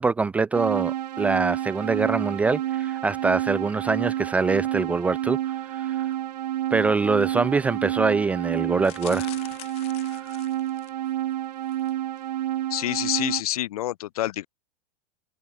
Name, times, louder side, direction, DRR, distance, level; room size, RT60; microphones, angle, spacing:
voice 1, 0.0-5.4 5.7-6.1 6.7-9.3 10.1-10.3, right 4 dB, 5° right, 0.5 m, -24 dB
sound 1, 0.5-13.4, right 12 dB, 85° right, 2.9 m, -29 dB
sound 2, 8.8-11.1 11.6-11.9 12.2-12.3, left 19 dB, 30° left, 2.6 m, -44 dB
voice 2, 12.7-14.5, left 14 dB, 65° left, 6.4 m, -27 dB
supercardioid pair, 170°, 20 cm